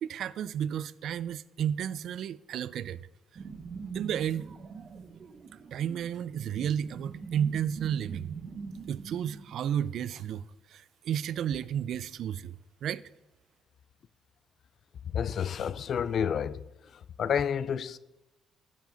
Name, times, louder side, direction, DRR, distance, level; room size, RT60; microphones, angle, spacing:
voice 1, 0.0-3.0 3.9-4.5 5.7-8.3 8.9-10.4 10.7-13.1, right 9 dB, 75° right, 0.4 m, -32 dB
sound 1, 3.3-10.1, right 5 dB, 50° right, 1.2 m, -43 dB
voice 2, 15.0-18.0, left 8 dB, 60° left, 0.4 m, -30 dB
14.5 x 7.5 x 3.9 m
cardioid pair, 90°, 0 cm